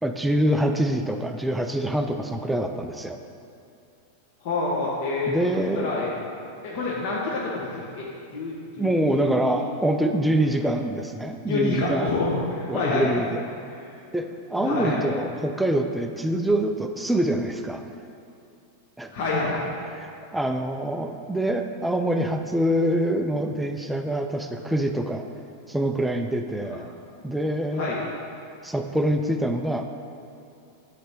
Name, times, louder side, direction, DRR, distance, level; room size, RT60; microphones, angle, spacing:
voice 1, 0.0-3.2 5.3-6.1 8.8-12.1 12.7-13.4 14.1-17.9 19.0-19.1 19.9-25.2 25.7-26.9 27.2-28.0 28.6-29.8, right 1 dB, 5° right, 5 dB, 0.4 m, -25 dB
voice 2, 4.4-5.3 5.7-6.1 6.6-9.6 11.5-13.1 13.7-13.9 14.6-15.1 19.1-19.7 24.6-24.7 27.7-28.0, left 3 dB, 55° left, -5 dB, 1.1 m, -28 dB
8.2 x 3.3 x 6.0 m, 2.6 s
supercardioid pair, 155°, 0 cm